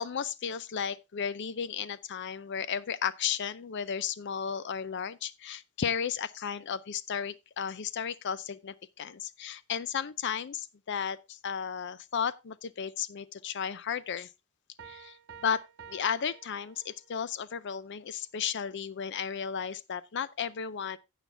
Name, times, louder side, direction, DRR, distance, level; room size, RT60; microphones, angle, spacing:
voice 1, 0.0-14.3 14.8-15.2 15.4-21.0, left 7 dB, 55° left, 0.5 m, -34 dB
Piano, 14.8-17.3, right 7 dB, 60° right, 0.9 m, -51 dB
16.0 x 5.8 x 3.3 m
head